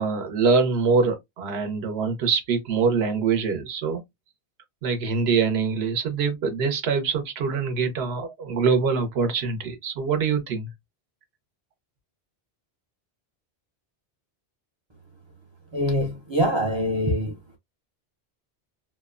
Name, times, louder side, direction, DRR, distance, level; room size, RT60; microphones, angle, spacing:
voice 1, 0.0-4.0 4.8-10.7, right 5 dB, 75° right, 0.9 m, -24 dB
voice 2, 15.7-17.3, equal, 45° right, 0.4 m, -24 dB
2.7 x 2.1 x 2.3 m
omnidirectional pair, 1.1 m